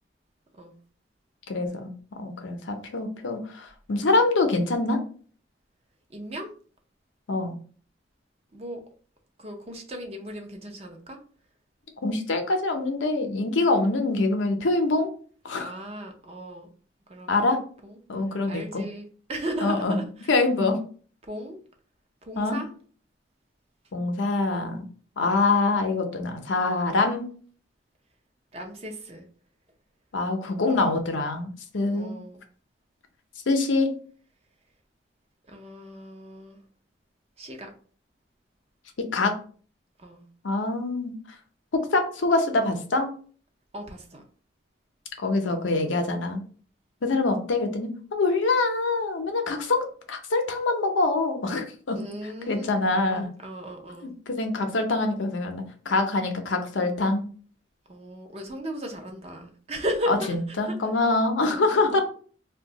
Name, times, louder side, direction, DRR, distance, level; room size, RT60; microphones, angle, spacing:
voice 1, 1.5-5.0 7.3-7.5 12.0-15.1 15.4-15.7 17.3-17.6 18.1-18.8 19.6-20.0 20.3-20.8 22.4-22.6 23.9-24.8 25.2-27.3 30.1-32.1 33.5-33.9 39.1-39.4 40.4-41.1 41.7-43.1 45.2-46.4 47.0-52.0 52.2-53.3 54.0-57.2 60.1-62.0, left 3 dB, 75° left, 5 dB, 0.6 m, -25 dB
voice 2, 6.1-6.5 8.5-8.8 9.4-11.2 15.6-16.7 17.1-18.0 18.5-20.3 21.3-21.6 22.2-22.7 28.5-29.3 31.9-32.4 35.5-36.6 37.4-37.7 40.0-40.3 43.7-44.2 51.9-54.1 57.9-60.8 61.4-62.0, equal, 30° right, 3 dB, 0.5 m, -36 dB
2.6 x 2.2 x 3.8 m, 0.43 s
head